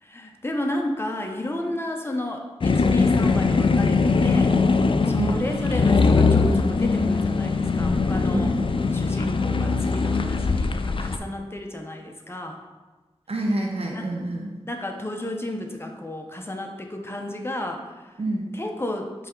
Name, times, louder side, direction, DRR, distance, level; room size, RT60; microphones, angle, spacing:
voice 1, 0.0-4.6 5.0-8.5 8.9-12.6 13.9-14.1 14.7-18.1 18.5-19.3, left 1 dB, 20° left, 2 dB, 0.8 m, -32 dB
sound 1, 2.6-11.2, left 4 dB, 55° left, 0.4 m, -21 dB
voice 2, 13.3-14.5 18.2-18.5, right 1 dB, 70° right, 0 dB, 0.8 m, -27 dB
7.4 x 3.4 x 3.9 m, 1.2 s
cardioid pair, 40°, 11 cm